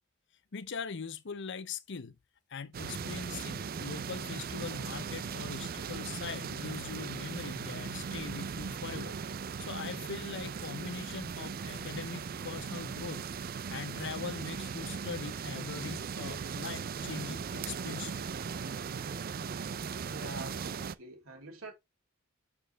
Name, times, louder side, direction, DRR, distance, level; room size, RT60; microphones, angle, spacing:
voice 1, 0.5-2.2 2.5-9.2 9.6-13.2 13.7-18.3, left 5 dB, 60° left, 0.6 m, -41 dB
sound 1, 2.7-20.9, right 6 dB, 45° right, 0.4 m, -38 dB
voice 2, 20.0-21.7, right 2 dB, 75° right, 3.1 m, -45 dB
6.9 x 6.6 x 3.3 m
head